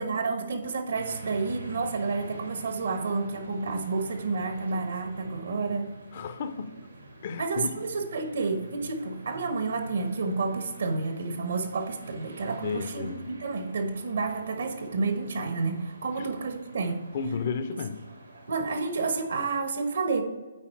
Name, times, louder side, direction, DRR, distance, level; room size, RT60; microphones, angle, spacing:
voice 1, 0.0-5.9 7.4-17.0 18.5-20.2, right 4 dB, 65° right, 7 dB, 1.1 m, -30 dB
sound 1, 0.9-19.3, right 1 dB, 90° right, 2.3 m, -47 dB
voice 2, 6.1-6.7 7.2-7.7 12.6-13.3 16.2-16.3 17.1-18.0, left 5 dB, 50° left, 11 dB, 0.6 m, -32 dB
8.9 x 4.4 x 4.5 m, 1.3 s
figure-of-eight pair, 140°, 0 cm